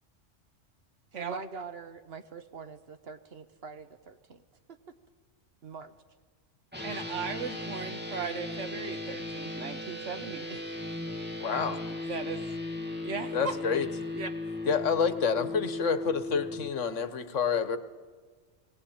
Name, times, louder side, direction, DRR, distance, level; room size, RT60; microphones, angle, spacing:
voice 1, 1.1-4.4 4.7-4.9 5.6-5.9 10.5-10.6, right 5 dB, 55° right, 9 dB, 1.3 m, -44 dB
sound 1, 6.7-16.7, left 2 dB, 10° right, 1.8 m, -37 dB
voice 2, 6.8-10.5 12.1-12.4 13.0-13.5 14.1-14.3, right 5 dB, 75° right, 8 dB, 1.6 m, -37 dB
voice 3, 11.4-11.8 13.3-13.9 14.6-17.8, left 6 dB, 75° left, 11 dB, 1.5 m, -28 dB
20.5 x 18.0 x 8.7 m, 1.5 s
omnidirectional pair, 1.3 m